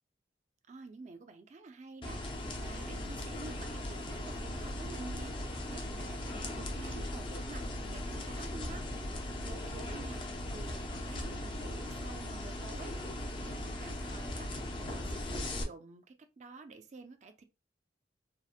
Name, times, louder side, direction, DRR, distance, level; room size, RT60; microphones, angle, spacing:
voice 1, 0.7-8.9 9.4-12.9 13.4-17.4, right 3 dB, 40° right, 0.4 m, -50 dB
sound 1, 2.0-15.6, left 1 dB, 25° left, 0.4 m, -38 dB
2.8 x 2.0 x 2.4 m
head